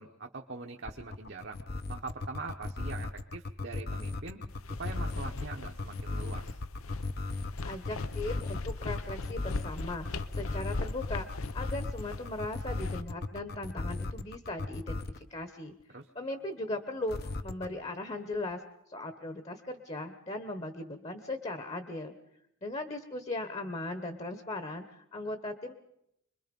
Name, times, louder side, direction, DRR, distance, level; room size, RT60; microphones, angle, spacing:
voice 1, 0.0-1.6 1.9-4.4 4.8-6.6 15.9-16.1, right 3 dB, 55° right, 2 dB, 1.2 m, -43 dB
sound 1, 0.9-15.3 17.1-17.7, left 3 dB, 50° left, 0.9 m, -36 dB
sound 2, 4.5-13.0, left 3 dB, 85° left, 0.8 m, -40 dB
voice 2, 7.6-11.3 11.5-15.7 16.1-18.6 18.9-22.1 22.6-25.7, left 2 dB, 30° left, 8 dB, 1.2 m, -38 dB
25.5 x 22.0 x 5.4 m, 0.78 s
head